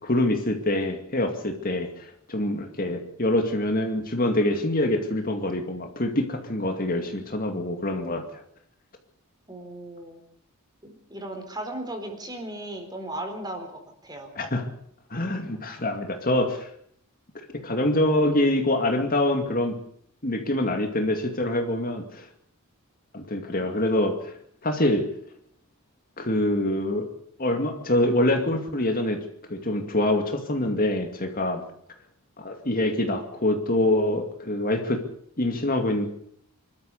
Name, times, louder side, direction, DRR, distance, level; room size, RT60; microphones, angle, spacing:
voice 1, 0.0-8.2 14.4-14.7 15.1-16.7 17.5-19.8 20.2-22.3 23.1-24.3 24.6-25.1 26.2-27.1 27.4-31.6 32.4-35.0 35.4-36.1, left 1 dB, 40° left, 4 dB, 2.4 m, -25 dB
voice 2, 9.5-10.2 10.8-14.3, right 1 dB, 20° right, 5 dB, 4.1 m, -36 dB
25.5 x 13.0 x 8.3 m, 0.66 s
head